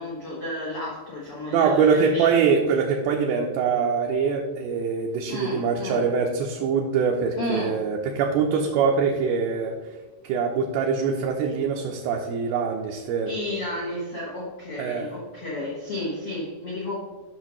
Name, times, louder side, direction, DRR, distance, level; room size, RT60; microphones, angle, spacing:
voice 1, 0.0-2.3 5.3-6.0 7.4-7.8 13.3-16.9, left 1 dB, 80° left, -6 dB, 1.2 m, -32 dB
voice 2, 1.5-9.8 10.2-13.3 14.8-15.1, right 5 dB, 80° right, 1 dB, 2.4 m, -23 dB
11.0 x 6.0 x 3.0 m, 1.3 s
omnidirectional pair, 4.7 m